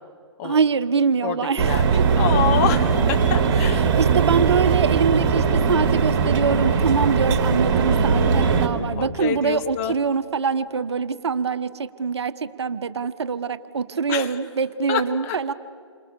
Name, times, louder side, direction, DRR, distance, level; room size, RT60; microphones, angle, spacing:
voice 1, 0.4-2.2 3.6-11.7 12.0-12.3 12.6-15.5, right 5 dB, 65° right, 12 dB, 1.2 m, -24 dB
voice 2, 1.2-1.9 2.1-3.9 9.0-10.0 14.1-14.3 14.9-15.4, left 9 dB, 30° left, 7 dB, 1.6 m, -27 dB
sound 1, 1.6-8.7, right 5 dB, 45° right, 3.3 m, -19 dB
29.0 x 26.0 x 6.9 m, 2.3 s
figure-of-eight pair, 130°, 15 cm